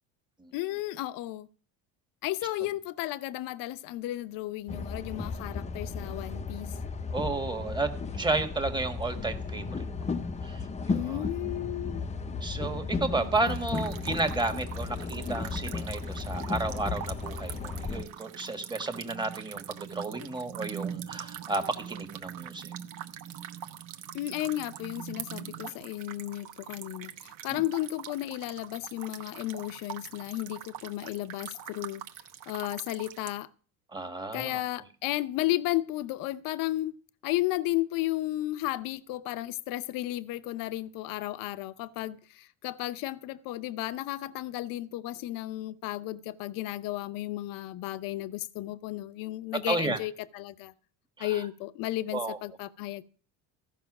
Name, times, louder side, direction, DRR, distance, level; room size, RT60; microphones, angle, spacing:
voice 1, 0.5-1.5 2.2-6.7 10.9-12.4 13.2-13.6 24.1-32.0 32.5-33.5 34.3-36.9 37.2-50.7 51.2-53.0, left 16 dB, 65° left, 0.7 m, -33 dB
sound 1, 4.7-18.0, left 4 dB, 20° left, 0.6 m, -35 dB
voice 2, 7.1-7.9 8.1-11.2 12.4-22.7 27.5-27.6 33.9-34.6 49.7-50.0 51.2-51.4 52.1-52.4, right 3 dB, 10° right, 1.5 m, -32 dB
sound 2, 13.5-33.3, right 9 dB, 60° right, 1.0 m, -43 dB
14.5 x 5.7 x 6.0 m
supercardioid pair, 105°, 36 cm